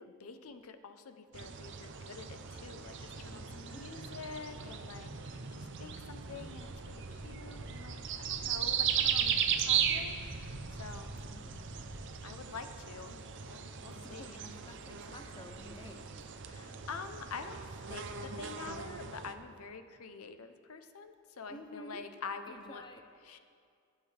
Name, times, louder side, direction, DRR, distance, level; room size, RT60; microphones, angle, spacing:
voice 1, 0.0-11.2 12.2-14.4 16.5-17.6 17.9-22.8 23.2-23.4, left 4 dB, 75° left, 9 dB, 0.7 m, -47 dB
sound 1, 1.3-19.3, right 8 dB, 55° right, 0.6 m, -37 dB
sound 2, 3.1-4.7 5.0-5.1 5.5-12.0, right 1 dB, 70° right, 1.1 m, -50 dB
voice 2, 3.3-3.9 11.3-11.7 13.9-16.1 21.5-22.1 22.5-23.1, left 1 dB, 20° left, 6 dB, 0.6 m, -51 dB
19.5 x 9.0 x 3.4 m, 2.3 s
head